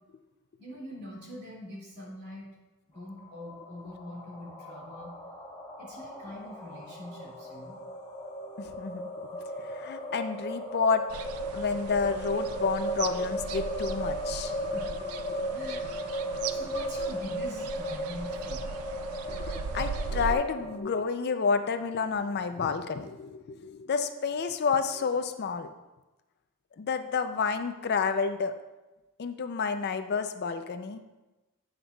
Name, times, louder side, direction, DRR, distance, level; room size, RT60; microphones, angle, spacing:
voice 1, 0.6-2.5 2.9-5.1 5.8-7.8 10.0-10.2 14.7-14.9 15.5-15.9 16.5-18.8 21.0-21.1, left 1 dB, 50° right, -4 dB, 2.3 m, -43 dB
sound 1, 3.0-20.8, equal, 20° left, 1.2 m, -36 dB
sound 2, 5.9-18.8, left 1 dB, 65° left, 1.9 m, -56 dB
voice 2, 8.6-11.0 11.5-14.5 19.3-25.7 26.8-28.5 29.2-31.0, left 5 dB, 50° left, 9 dB, 0.4 m, -30 dB
sound 3, 11.1-20.3, right 5 dB, 80° right, 0.4 m, -39 dB
9.8 x 8.0 x 2.3 m, 1.1 s
head